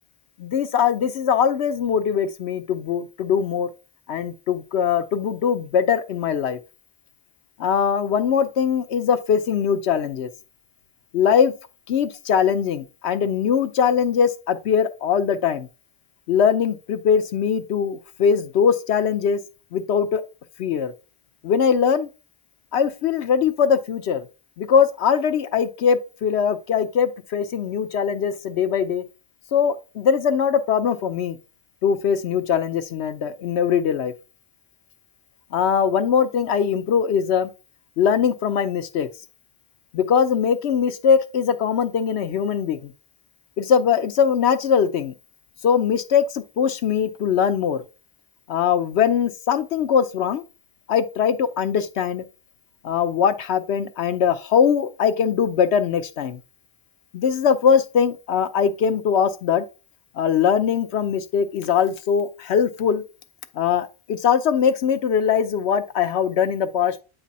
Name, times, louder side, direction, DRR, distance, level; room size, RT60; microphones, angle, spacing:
voice 1, 0.4-3.7 4.1-6.6 7.6-10.3 11.1-11.5 11.9-15.7 16.3-19.4 19.7-20.2 20.6-20.9 21.4-22.1 22.7-24.3 24.6-29.0 29.5-31.4 31.8-34.1 35.5-37.5 38.0-39.1 39.9-42.9 43.6-45.1 45.6-47.8 48.5-50.4 50.9-52.2 52.8-56.4 57.1-59.6 60.2-63.0 63.6-67.0, left 7 dB, 70° left, 0.8 m, -21 dB
8.2 x 3.3 x 4.0 m
omnidirectional pair, 1.2 m